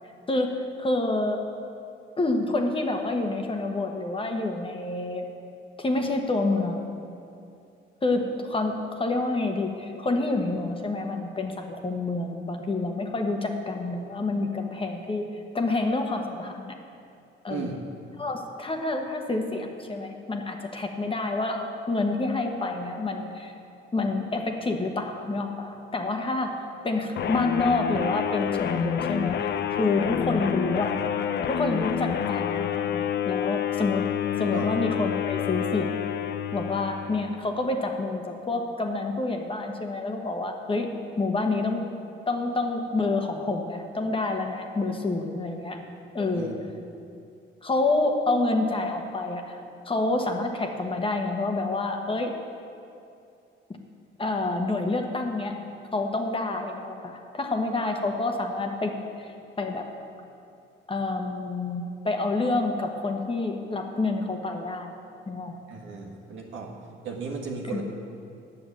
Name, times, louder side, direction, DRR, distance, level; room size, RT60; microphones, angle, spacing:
voice 1, 0.3-1.4 2.2-5.3 5.8-6.9 8.0-15.3 15.5-16.8 17.4-17.7 18.2-23.5 23.9-30.9 31.5-34.0 34.4-35.9 36.5-40.9 41.2-41.8 42.3-45.8 46.1-46.5 47.6-49.6 49.9-52.3 54.2-55.5 55.9-59.3 59.6-59.9 60.9-64.9 65.3-65.6 67.7-67.8, left 2 dB, 25° left, 3 dB, 1.2 m, -28 dB
voice 2, 17.5-17.8 34.4-34.7 46.3-46.5 65.7-66.7 67.0-67.8, right 4 dB, 80° right, 0 dB, 1.6 m, -35 dB
sound 1, 27.2-37.4, left 9 dB, 60° left, 0.5 m, -28 dB
9.1 x 7.0 x 7.3 m, 2.5 s
cardioid pair, 90°, 20 cm